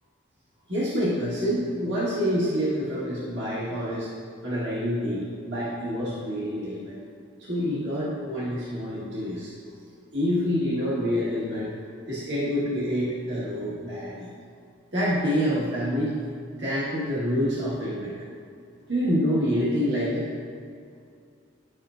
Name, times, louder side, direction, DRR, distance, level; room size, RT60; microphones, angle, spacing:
voice 1, 0.7-4.1 4.4-7.0 7.4-9.5 10.1-11.7 12.1-14.3 14.9-16.2 16.6-18.1 18.9-20.3, equal, 60° right, -9 dB, 1.7 m, -27 dB
10.5 x 7.3 x 2.6 m, 2.3 s
head